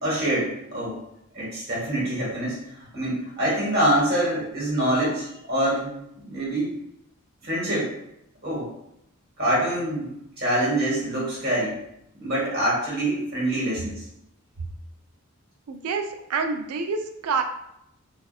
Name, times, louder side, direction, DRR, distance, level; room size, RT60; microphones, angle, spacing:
voice 1, 0.0-1.0 1.3-2.6 2.9-6.7 7.4-7.9 8.4-8.7 9.4-11.8 12.2-14.0, right 1 dB, 45° right, -6 dB, 1.1 m, -25 dB
voice 2, 15.7-17.4, right 5 dB, 85° right, 6 dB, 0.3 m, -27 dB
2.6 x 2.2 x 2.3 m, 0.79 s
head